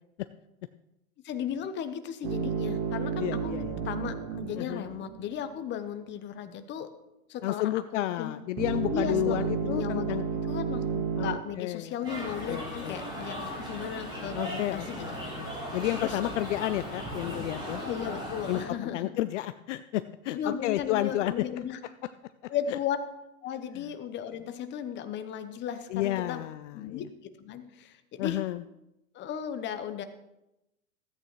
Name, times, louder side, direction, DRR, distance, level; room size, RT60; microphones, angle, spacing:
voice 1, 1.2-6.9 7.3-8.3 8.9-15.1 16.0-16.2 17.8-19.1 20.3-21.8 22.5-23.0 23.4-26.4 26.7-27.1 27.4-28.4 29.1-30.0, left 8 dB, 25° left, 10 dB, 0.8 m, -36 dB
sound 1, 2.2-5.6 8.6-11.4, right 6 dB, 50° right, 1.6 m, -32 dB
voice 2, 3.2-3.8 4.6-4.9 7.4-10.2 11.2-11.9 12.2-12.9 14.3-17.8 18.5-18.6 18.9-21.4 23.7-23.8 25.9-27.0 28.2-28.6, left 14 dB, 60° left, 13 dB, 0.5 m, -31 dB
sound 2, 12.0-18.6, equal, 10° right, 4.3 m, -37 dB
14.0 x 8.8 x 3.1 m, 0.90 s
hypercardioid pair, 110°, 42 cm